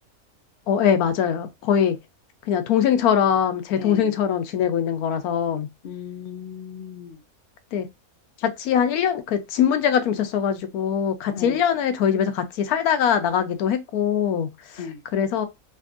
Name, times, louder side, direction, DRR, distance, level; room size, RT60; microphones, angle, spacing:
voice 1, 0.7-2.0 2.5-5.7 7.7-7.9 8.4-14.8 15.1-15.5, left 8 dB, 85° left, 1.2 m, -22 dB
voice 2, 3.8-4.1 5.8-7.2 11.3-11.6 14.8-15.0, left 7 dB, 55° left, 0.6 m, -36 dB
3.4 x 2.6 x 2.4 m
omnidirectional pair, 1.5 m